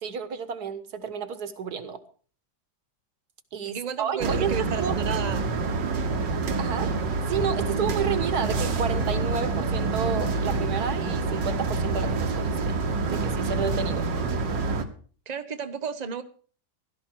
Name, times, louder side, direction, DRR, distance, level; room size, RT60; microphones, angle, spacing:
voice 1, 0.0-2.0 3.5-5.0 6.6-6.9 7.3-12.7 13.1-14.1, right 7 dB, 60° right, 11 dB, 1.8 m, -31 dB
voice 2, 3.6-5.4 15.3-16.2, right 6 dB, 30° right, 9 dB, 1.0 m, -33 dB
sound 1, 4.2-14.8, right 3 dB, 80° right, 2.1 m, -27 dB
16.5 x 12.5 x 4.6 m, 0.42 s
omnidirectional pair, 1.9 m